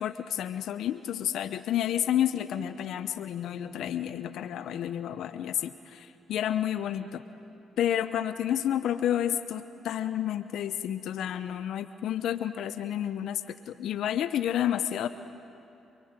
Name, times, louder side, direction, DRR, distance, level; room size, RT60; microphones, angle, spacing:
voice 1, 0.0-7.2 7.8-15.1, left 10 dB, 75° left, 11 dB, 0.8 m, -30 dB
29.5 x 22.0 x 8.9 m, 2.8 s
supercardioid pair, 60°, 0 cm